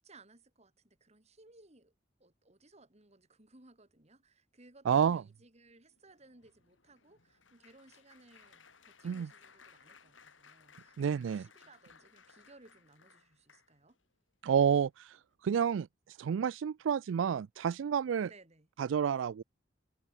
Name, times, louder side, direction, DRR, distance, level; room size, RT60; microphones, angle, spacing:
voice 1, 0.0-1.9 2.2-14.0 18.3-18.7, right 2 dB, 35° right, 3.1 m, -61 dB
voice 2, 4.9-5.2 9.0-9.3 11.0-11.5 14.4-15.2 15.4-15.9 16.2-18.3 18.8-19.4, right 7 dB, 80° right, 0.3 m, -29 dB
Applause, 5.7-14.0 14.6-14.9 15.2-15.3, left 6 dB, 90° left, 6.7 m, -61 dB
head